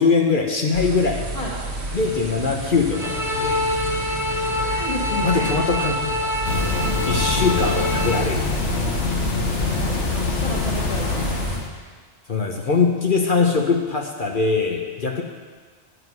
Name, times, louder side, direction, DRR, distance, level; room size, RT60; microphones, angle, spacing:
voice 1, 0.0-1.2 1.9-3.6 5.2-6.0 6.7-8.5 12.3-15.2, left 4 dB, 45° left, 2 dB, 1.0 m, -22 dB
sound 1, 0.7-11.6, right 1 dB, 60° right, 1.6 m, -30 dB
sound 2, 2.9-8.2, left 1 dB, ahead, 0.9 m, -25 dB
voice 2, 4.3-5.5 7.7-7.9 9.8-11.3, left 2 dB, 30° left, -3 dB, 1.7 m, -32 dB
sound 3, 6.4-11.7, left 4 dB, 70° left, 1.3 m, -25 dB
9.4 x 8.0 x 6.1 m, 1.5 s
omnidirectional pair, 1.3 m